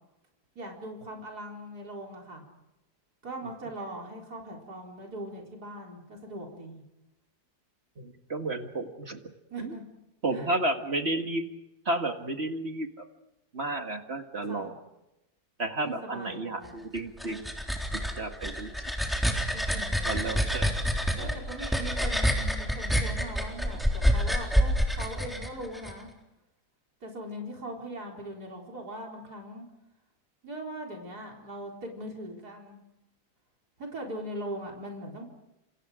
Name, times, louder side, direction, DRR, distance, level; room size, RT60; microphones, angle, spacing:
voice 1, 0.5-2.4 3.2-6.8 9.5-9.8 10.3-10.5 14.4-14.7 15.8-16.9 19.5-20.1 21.2-26.1 27.0-29.7 30.4-32.8 33.8-35.3, right 1 dB, 70° right, 0 dB, 4.8 m, -40 dB
voice 2, 8.0-9.2 9.6-9.7 10.2-11.5 11.9-13.0 13.5-14.7 15.6-17.5 17.9-18.9 19.8-20.7 21.2-21.3, right 2 dB, 40° right, 5 dB, 2.0 m, -32 dB
sound 1, 17.0-25.9, equal, ahead, 3.7 m, -27 dB
28.0 x 28.0 x 5.1 m, 0.92 s
omnidirectional pair, 1.7 m